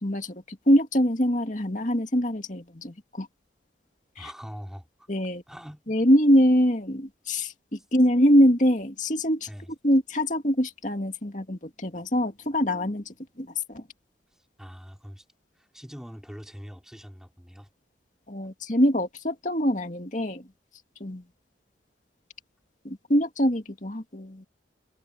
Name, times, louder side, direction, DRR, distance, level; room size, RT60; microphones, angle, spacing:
voice 1, 0.0-3.3 4.2-4.3 5.1-5.4 5.9-9.5 9.8-13.8 18.3-20.5 21.0-21.2 22.8-24.5, equal, 45° left, 2.5 m, -24 dB
voice 2, 4.2-5.1 5.5-5.8 9.5-9.7 14.6-15.2 15.6-17.7, equal, 5° right, 4.1 m, -43 dB
head